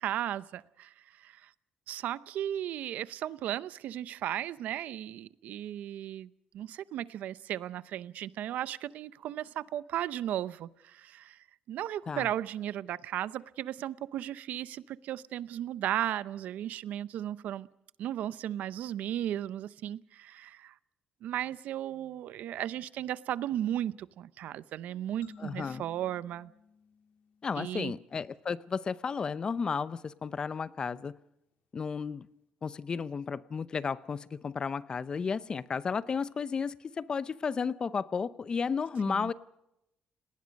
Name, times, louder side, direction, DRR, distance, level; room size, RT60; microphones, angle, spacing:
voice 1, 0.0-1.5 1.9-17.7 18.0-20.7 21.2-26.5 27.6-27.9 39.1-39.3, right 11 dB, 70° right, 0.7 m, -35 dB
sound 1, 25.2-27.9, left 5 dB, 85° left, 4.2 m, -55 dB
voice 2, 25.4-25.8 27.4-31.2 31.7-32.3 32.6-39.3, left 5 dB, 30° left, 0.7 m, -33 dB
30.0 x 19.0 x 5.3 m
cardioid pair, 140°, 3 cm